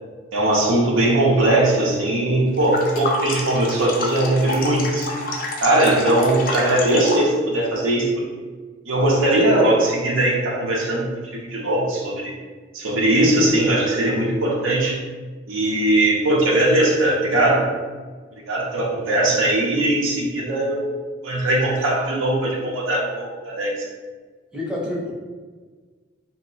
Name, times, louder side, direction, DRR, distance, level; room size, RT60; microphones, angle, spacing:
voice 1, 0.3-5.1 5.6-8.3 8.9-12.3 12.7-15.0 15.5-17.7 18.5-20.9 21.2-23.7, right 1 dB, 90° right, -3 dB, 0.7 m, -20 dB
sound 1, 2.6-7.3, left 2 dB, 45° left, 0.4 m, -28 dB
voice 2, 24.5-25.1, left 1 dB, 5° right, -5 dB, 0.6 m, -28 dB
2.8 x 2.1 x 3.9 m, 1.4 s
head